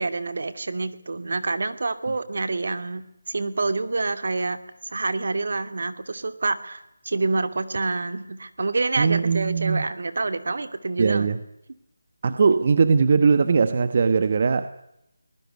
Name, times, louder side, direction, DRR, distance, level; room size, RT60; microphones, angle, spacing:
voice 1, 0.0-11.3, right 3 dB, 60° right, 2.4 m, -27 dB
voice 2, 9.0-9.8 11.0-11.4 12.2-14.7, right 5 dB, 35° right, 1.3 m, -20 dB
23.5 x 20.0 x 9.6 m
figure-of-eight pair, 170°, 0 cm